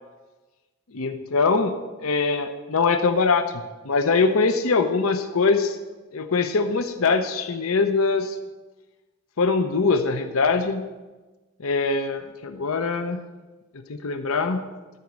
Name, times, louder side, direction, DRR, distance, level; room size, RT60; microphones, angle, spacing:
voice 1, 0.9-3.5 3.8-5.8 6.1-8.4 9.4-10.9 11.6-13.2 13.9-14.7, left 4 dB, 80° left, 8 dB, 0.7 m, -22 dB
12.5 x 5.1 x 7.2 m, 1.2 s
head